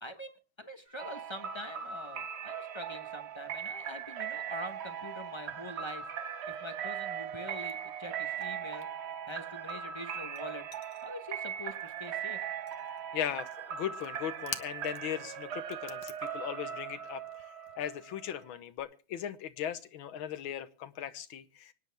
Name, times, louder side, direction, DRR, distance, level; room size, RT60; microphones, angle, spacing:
voice 1, 0.0-6.1 6.5-8.9 9.3-10.7 11.0-12.4, left 1 dB, 20° left, 7 dB, 0.8 m, -44 dB
sound 1, 0.8-8.1, right 3 dB, 50° right, 4.1 m, -66 dB
sound 2, 1.0-18.6, right 8 dB, 80° right, 0.5 m, -39 dB
sound 3, 7.4-8.5 8.7-12.2 12.5-13.0 13.9-15.2 15.5-18.8, left 9 dB, 65° left, 1.6 m, -48 dB
voice 2, 13.1-17.2 17.8-21.7, left 10 dB, 90° left, 13 dB, 1.8 m, -38 dB
25.0 x 9.9 x 3.4 m, 0.35 s
omnidirectional pair, 2.2 m